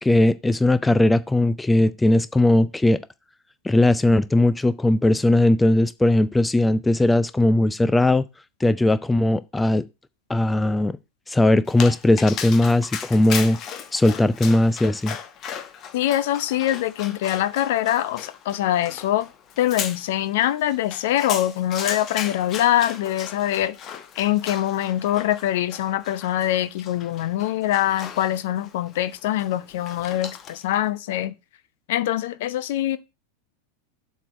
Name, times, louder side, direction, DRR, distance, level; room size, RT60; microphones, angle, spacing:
voice 1, 0.0-3.0 3.6-8.3 8.6-9.8 10.3-11.0 11.3-13.6 13.9-15.2, left 1 dB, 10° left, 0.4 m, -19 dB
Dog, 11.7-30.7, left 8 dB, 30° left, 1.1 m, -36 dB
voice 2, 15.9-19.3 19.6-23.8 24.2-31.3 31.9-33.0, left 13 dB, 50° left, 0.7 m, -23 dB
7.6 x 4.6 x 6.2 m
figure-of-eight pair, 90°, 0 cm